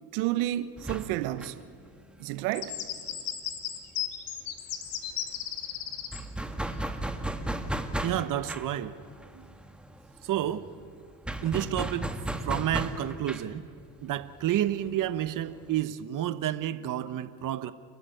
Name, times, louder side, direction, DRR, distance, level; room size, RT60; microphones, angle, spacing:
voice 1, 0.1-1.7 2.2-2.8, right 14 dB, 80° right, 1.1 m, -30 dB
sound 1, 0.8-4.2 4.4-4.6 4.8-15.8, right 1 dB, ahead, 1.4 m, -36 dB
sound 2, 2.5-6.2, left 11 dB, 65° left, 2.2 m, -35 dB
voice 2, 8.0-8.9 9.3-9.4 10.2-10.7 11.4-12.1 12.4-13.7 14.0-17.7, right 12 dB, 45° right, 1.0 m, -30 dB
29.5 x 12.5 x 9.2 m
supercardioid pair, 95°, 44 cm